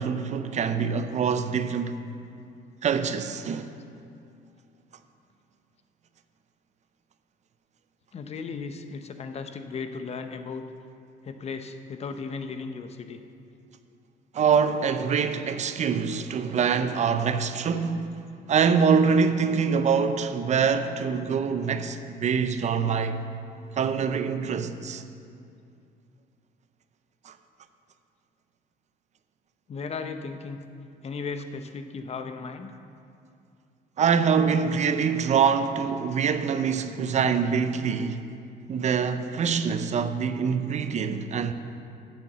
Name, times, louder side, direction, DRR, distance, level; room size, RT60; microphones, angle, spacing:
voice 1, 0.0-2.0 2.8-3.7 14.3-18.1 18.5-23.2 23.7-25.0 27.2-27.3 34.0-38.2 38.7-41.5, right 6 dB, 45° right, 0.6 m, -24 dB
voice 2, 8.1-10.6 11.2-13.2 29.7-30.6 31.0-32.7, left 4 dB, 40° left, 0.7 m, -36 dB
9.4 x 6.7 x 7.3 m
cardioid pair, 110°, 17 cm